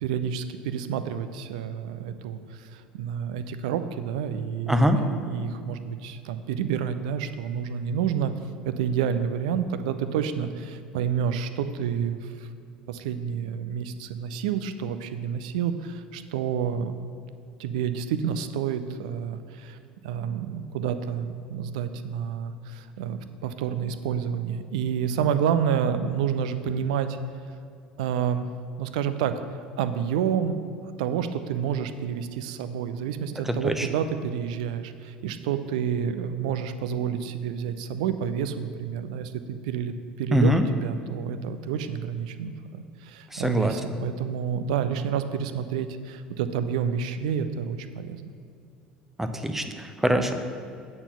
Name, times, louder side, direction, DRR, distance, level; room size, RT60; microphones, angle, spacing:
voice 1, 0.0-8.3 8.6-12.5 12.9-17.1 17.6-19.8 20.0-27.2 28.0-28.5 28.8-29.4 29.8-30.6 31.0-48.3, right 8 dB, 60° right, 11 dB, 0.5 m, -29 dB
voice 2, 4.7-5.0 33.5-33.9 40.3-40.7 43.3-43.7 49.2-50.3, equal, 5° right, 7 dB, 0.7 m, -23 dB
8.7 x 4.3 x 6.8 m, 2.4 s
figure-of-eight pair, 65°, 5 cm